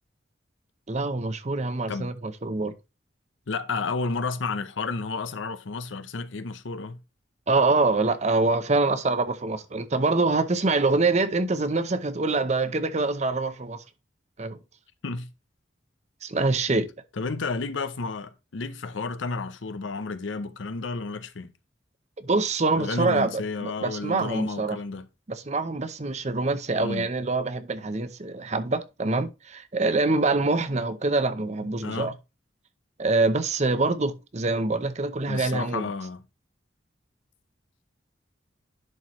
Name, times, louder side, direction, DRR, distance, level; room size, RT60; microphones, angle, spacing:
voice 1, 0.9-2.7 7.5-13.8 14.4-14.6 16.2-16.9 22.2-23.3 23.6-24.8 25.3-32.1 33.0-35.9, right 3 dB, 35° right, 0.7 m, -25 dB
voice 2, 3.5-7.0 15.0-15.3 17.2-21.5 22.8-25.1 26.8-27.1 31.8-32.1 35.3-36.2, left 4 dB, 90° left, 0.7 m, -31 dB
11.0 x 4.6 x 3.1 m
head